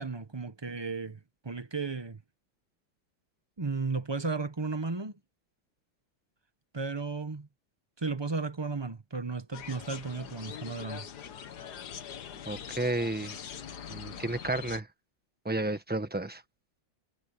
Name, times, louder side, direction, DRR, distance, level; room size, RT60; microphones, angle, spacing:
voice 1, 0.0-2.2 3.6-5.1 6.7-7.5 8.0-11.1, right 4 dB, 25° right, 0.6 m, -34 dB
sound 1, 9.5-14.8, left 8 dB, 60° left, 1.7 m, -43 dB
voice 2, 12.4-13.4 13.9-14.9 15.4-16.4, right 2 dB, 5° right, 1.2 m, -32 dB
omnidirectional pair, 2.1 m